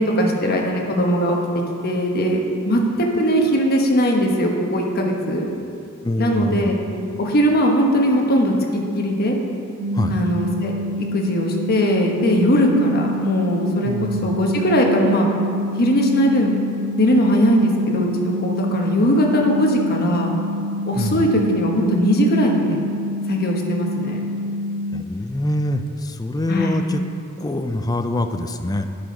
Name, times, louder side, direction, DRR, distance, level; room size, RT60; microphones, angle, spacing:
voice 1, 0.0-1.4 1.8-5.4 6.2-6.8 7.2-9.4 10.1-15.3 15.8-16.5 17.0-20.3 20.9-22.8 23.3-24.2 26.5-26.8, equal, 45° left, 0 dB, 1.2 m, -19 dB
voice 2, 6.0-6.7 9.9-10.2 13.8-14.4 21.0-21.3 24.9-27.0 27.4-28.9, left 1 dB, 20° left, 7 dB, 0.4 m, -24 dB
sound 1, 9.8-25.0, left 1 dB, 80° right, 0.4 m, -27 dB
10.0 x 5.9 x 5.2 m, 2.5 s
head